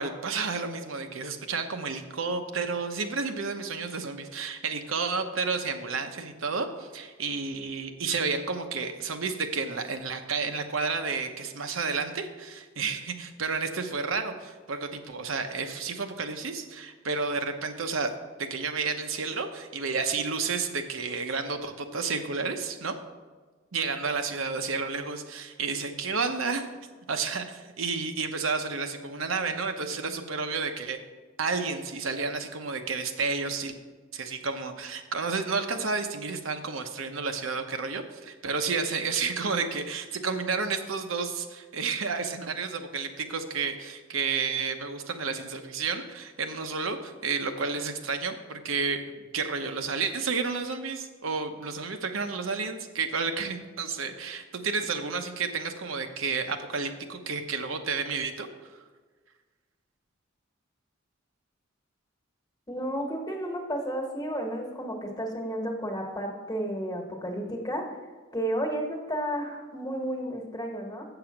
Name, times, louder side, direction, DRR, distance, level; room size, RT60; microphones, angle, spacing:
voice 1, 0.0-18.1 18.4-22.9 23.7-26.7 27.1-31.0 31.4-33.7 34.1-58.5, right 4 dB, 85° right, 6 dB, 0.9 m, -31 dB
voice 2, 62.7-67.8 68.3-71.0, right 1 dB, 20° left, 2 dB, 1.3 m, -32 dB
7.9 x 6.9 x 5.9 m, 1.4 s
head